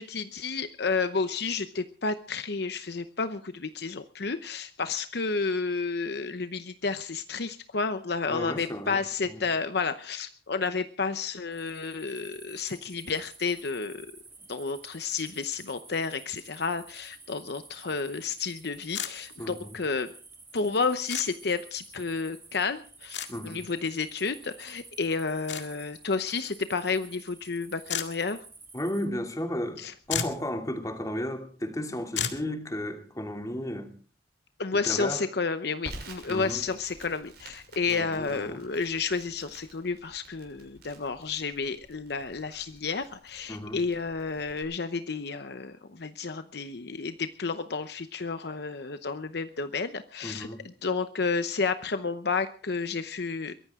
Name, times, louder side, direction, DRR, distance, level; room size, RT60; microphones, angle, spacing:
voice 1, 0.0-14.1 14.5-20.1 20.5-23.2 23.4-28.4 29.8-29.9 34.6-53.5, left 4 dB, 60° left, 0.8 m, -31 dB
voice 2, 8.3-9.0 9.2-9.3 19.4-19.7 23.3-23.6 28.7-29.8 30.1-33.9 34.9-35.2 36.3-36.6 37.9-38.6 43.5-43.8 50.2-50.6, left 1 dB, 20° left, 2.7 m, -33 dB
sound 1, 11.5-29.1, right 3 dB, 15° right, 3.6 m, -51 dB
sound 2, 18.9-19.1 21.1-21.3 23.1-23.3 25.5-25.7 27.9-28.1 29.7-29.8 30.1-30.4 32.2-32.4, left 8 dB, 80° left, 2.0 m, -31 dB
Crackle, 35.8-44.6, right 2 dB, 60° right, 6.6 m, -50 dB
22.5 x 15.5 x 3.7 m
head